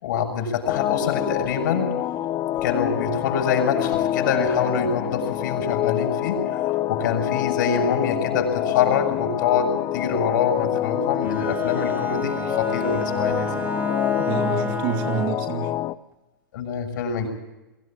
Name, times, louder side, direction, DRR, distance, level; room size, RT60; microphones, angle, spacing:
voice 1, 0.0-1.9 2.6-13.7 16.5-17.3, left 6 dB, 55° left, 4 dB, 6.7 m, -25 dB
sound 1, 0.6-15.9, left 13 dB, 30° left, 1.0 m, -26 dB
Bowed string instrument, 11.2-15.5, right 4 dB, 15° right, 2.2 m, -32 dB
voice 2, 14.2-15.8, right 7 dB, 40° right, 6 dB, 2.5 m, -28 dB
23.5 x 16.5 x 8.8 m, 1.0 s
hypercardioid pair, 110°, 12 cm